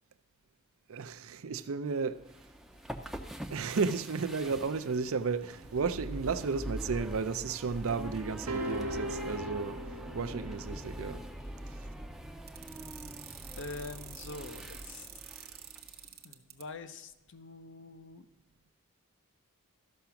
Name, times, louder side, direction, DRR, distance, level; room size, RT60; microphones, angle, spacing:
voice 1, 0.9-2.3 3.5-9.8 10.1-11.2 11.7-11.9, right 5 dB, 65° right, 0.5 m, -33 dB
sound 1, 2.2-16.1, right 1 dB, ahead, 0.5 m, -43 dB
sound 2, 8.5-10.9, right 1 dB, 90° right, 1.0 m, -38 dB
sound 3, 12.5-16.6, right 11 dB, 45° right, 0.9 m, -48 dB
voice 2, 13.6-15.1 16.2-18.3, left 3 dB, 55° left, 0.6 m, -45 dB
13.0 x 5.9 x 5.8 m
head